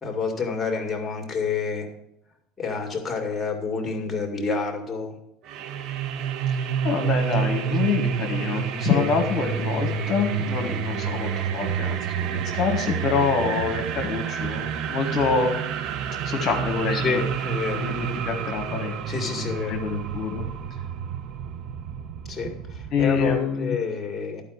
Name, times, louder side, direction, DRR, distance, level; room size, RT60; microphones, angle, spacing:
voice 1, 0.0-1.9 2.6-5.2 8.8-9.1 16.9-17.9 19.1-19.8 22.3-24.4, left 4 dB, 20° left, 3 dB, 2.0 m, -28 dB
sound 1, 5.5-23.4, right 7 dB, 60° right, 0.7 m, -29 dB
voice 2, 6.8-15.6 16.2-17.2 17.7-20.5 22.9-23.8, left 5 dB, 45° left, 2 dB, 1.3 m, -26 dB
11.0 x 5.0 x 6.5 m, 0.80 s
supercardioid pair, 100°, 0 cm